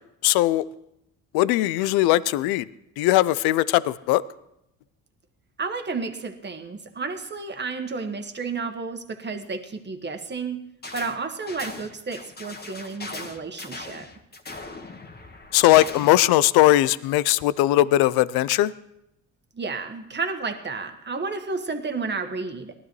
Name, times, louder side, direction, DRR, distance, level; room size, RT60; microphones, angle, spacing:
voice 1, 0.2-0.6 1.3-2.7 3.0-4.2 15.5-18.7, left 16 dB, 75° left, 19 dB, 0.5 m, -19 dB
voice 2, 5.6-10.7 10.9-14.1 19.5-22.7, right 4 dB, 30° right, 6 dB, 1.5 m, -31 dB
sound 1, 10.8-11.2 11.5-16.3, left 3 dB, 25° left, 1.4 m, -39 dB
18.5 x 12.5 x 3.1 m, 0.81 s
supercardioid pair, 70°, 38 cm